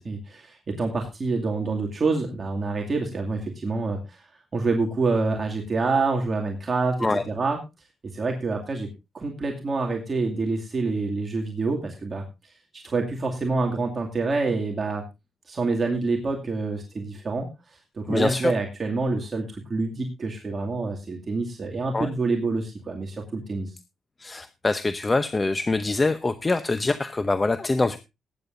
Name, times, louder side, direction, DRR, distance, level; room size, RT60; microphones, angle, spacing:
voice 1, 0.0-4.3 4.5-7.6 8.1-8.9 9.1-15.0 15.5-23.8, right 3 dB, 35° right, 1 dB, 2.3 m, -27 dB
voice 2, 18.1-18.5 21.9-22.1 24.2-28.0, left 3 dB, 20° left, 11 dB, 0.8 m, -24 dB
19.5 x 9.7 x 2.6 m, 0.25 s
cardioid pair, 110°, 0 cm